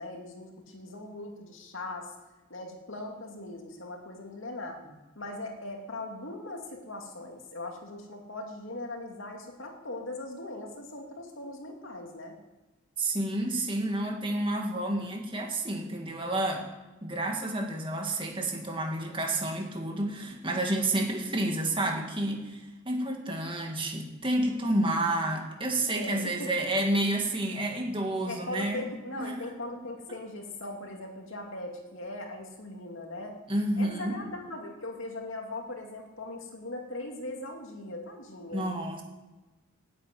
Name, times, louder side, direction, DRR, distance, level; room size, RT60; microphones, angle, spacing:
voice 1, 0.0-2.1 2.5-4.8 5.2-12.4 25.9-26.7 28.2-33.4 33.8-38.7, left 2 dB, 70° left, 2 dB, 2.4 m, -40 dB
voice 2, 13.0-16.7 17.0-28.8 29.2-29.4 33.5-34.2 38.5-39.0, right 1 dB, 25° right, 2 dB, 1.9 m, -30 dB
8.8 x 8.5 x 9.3 m, 1.1 s
head